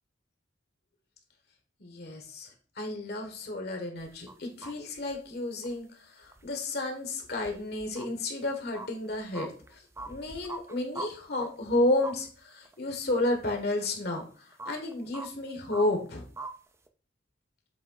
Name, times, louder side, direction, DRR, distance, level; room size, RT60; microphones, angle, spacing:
voice 1, 1.8-2.5 2.8-5.9 6.1-9.8 10.0-16.2, left 2 dB, 60° left, 4 dB, 1.3 m, -31 dB
sound 1, 4.0-4.3 4.6-4.7 5.0-5.3 5.6-5.7 6.2-6.4 7.4-8.1 8.7-11.1 11.4-11.5 12.0-12.2 12.6-12.7 14.1-14.2 14.5-15.3 15.7-15.8 16.4-16.5 16.9-17.0, right 2 dB, 15° right, 0.5 m, -41 dB
7.7 x 3.4 x 3.8 m, 0.40 s
head